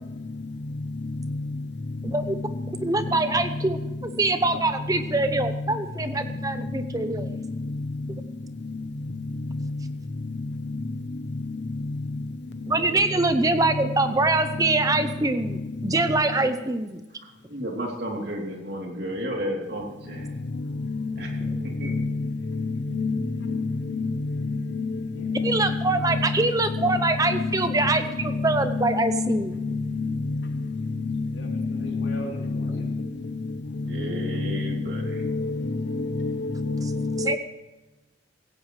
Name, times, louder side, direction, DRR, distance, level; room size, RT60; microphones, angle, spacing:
voice 1, 2.0-7.3 12.7-17.0 21.5-21.7 25.4-29.5 37.2-37.4, right 2 dB, 20° right, 9 dB, 0.6 m, -24 dB
voice 2, 13.9-14.5 25.2-25.5 26.4-26.5 31.3-32.9, right 1 dB, 80° left, -1 dB, 3.3 m, -42 dB
voice 3, 17.2-20.3 21.2-21.5 21.8-21.9 33.8-35.2, equal, 55° right, 0 dB, 3.1 m, -33 dB
voice 4, 25.2-25.8 26.8-26.9 28.8-30.1 31.1-31.2 31.9-32.2 35.2-35.4 36.7-37.2, left 4 dB, 65° left, 11 dB, 0.9 m, -27 dB
16.0 x 16.0 x 3.2 m, 1.1 s
head